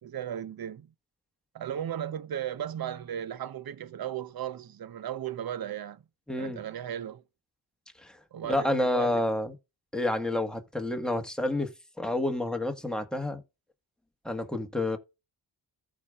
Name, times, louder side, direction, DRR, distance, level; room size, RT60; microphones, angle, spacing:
voice 1, 0.0-0.9 1.5-6.0 6.4-7.2 8.3-9.2, right 10 dB, 55° right, 0.8 m, -36 dB
voice 2, 6.3-6.6 8.0-8.1 8.5-9.5 9.9-11.7 12.0-13.4 14.2-15.0, left 1 dB, ahead, 1.4 m, -29 dB
14.5 x 4.9 x 2.4 m
cardioid pair, 75°, 43 cm